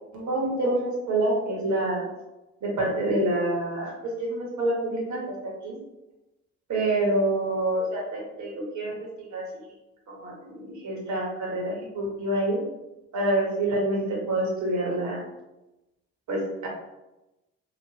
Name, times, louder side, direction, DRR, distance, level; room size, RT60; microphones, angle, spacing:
voice 1, 0.1-2.0 2.6-3.9 4.2-5.8 6.7-9.4 10.1-12.6 13.1-15.2 16.3-16.7, right 1 dB, 50° right, -2 dB, 1.3 m, -27 dB
3.0 x 2.5 x 3.0 m, 0.98 s
hypercardioid pair, 45°, 36 cm